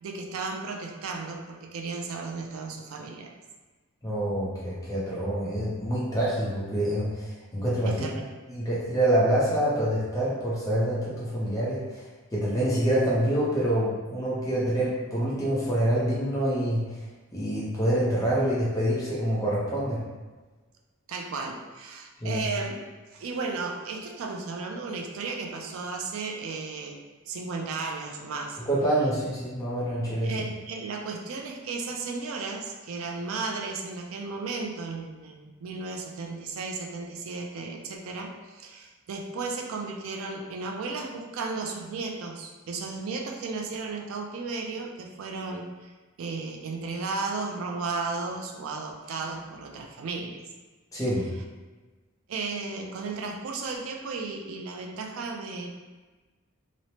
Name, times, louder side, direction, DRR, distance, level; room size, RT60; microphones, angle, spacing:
voice 1, 0.0-3.3 7.8-8.4 21.1-22.8 23.1-27.0 27.3-28.6 30.2-45.9 46.2-50.4 52.3-55.7, right 4 dB, 75° right, 1 dB, 0.4 m, -34 dB
voice 2, 4.0-8.0 8.5-12.1 12.3-16.8 17.3-20.0 22.2-22.4 28.7-30.3 50.9-51.3, right 1 dB, 15° left, -7 dB, 0.5 m, -26 dB
3.0 x 2.0 x 2.7 m, 1.3 s
head